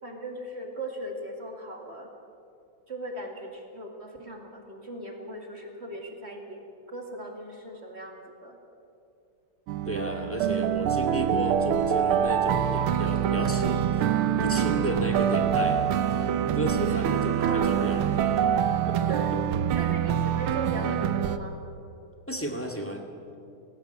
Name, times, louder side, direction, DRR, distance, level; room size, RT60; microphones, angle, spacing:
voice 1, 0.0-2.1 2.9-6.6 6.9-8.6 17.4-17.9 19.1-19.3 19.7-21.6, right 1 dB, 30° right, 2 dB, 2.4 m, -38 dB
sound 1, 9.7-21.4, right 9 dB, 80° right, 1.7 m, -25 dB
voice 2, 9.9-14.1 14.4-15.8 16.5-18.1 18.9-19.1 22.3-23.0, equal, 5° left, 2 dB, 1.8 m, -33 dB
19.0 x 18.0 x 8.0 m, 2.5 s
omnidirectional pair, 2.3 m